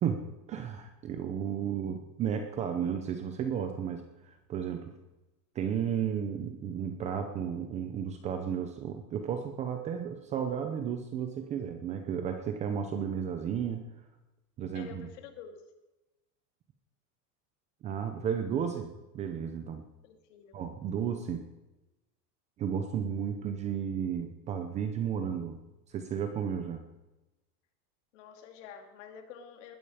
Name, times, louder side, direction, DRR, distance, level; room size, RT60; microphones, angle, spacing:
voice 1, 0.0-4.9 5.5-13.8 14.6-15.1 17.8-19.8 20.5-21.5 22.6-25.6 25.9-26.8, right 8 dB, 15° right, 7 dB, 0.7 m, -33 dB
voice 2, 14.7-15.6 20.0-20.6 28.1-29.8, left 7 dB, 50° left, 6 dB, 2.6 m, -48 dB
20.0 x 12.5 x 5.0 m, 1.0 s
supercardioid pair, 180°, 46 cm